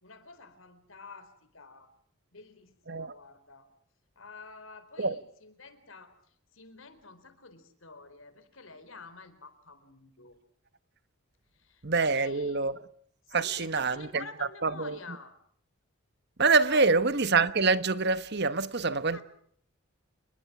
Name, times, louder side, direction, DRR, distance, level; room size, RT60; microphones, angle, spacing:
voice 1, 0.0-1.9 2.3-3.7 4.2-10.4 11.5-12.7 13.2-15.3 16.6-16.8 19.1-19.3, left 4 dB, 70° left, 4.3 m, -49 dB
voice 2, 11.8-12.7 13.3-14.2 14.6-15.0 16.4-19.3, right 4 dB, 50° right, 1.3 m, -26 dB
29.5 x 21.0 x 6.2 m
head